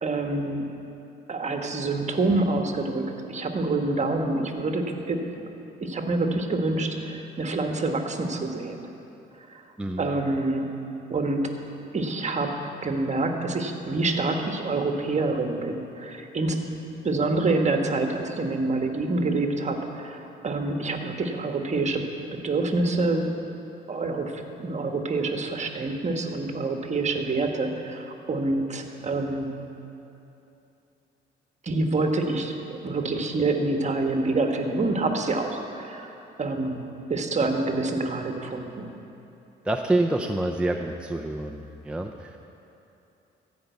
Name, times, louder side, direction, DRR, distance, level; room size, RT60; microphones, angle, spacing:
voice 1, 0.0-0.7 1.3-5.2 5.8-8.8 9.5-9.6 10.0-10.7 11.1-11.6 11.9-16.6 17.0-23.3 23.9-29.5 31.6-36.8 37.1-38.9, right 2 dB, 35° right, 4 dB, 1.3 m, -27 dB
voice 2, 39.7-42.4, right 2 dB, 5° right, 2 dB, 0.5 m, -27 dB
14.5 x 5.4 x 8.2 m, 2.9 s
cardioid pair, 90°, 20 cm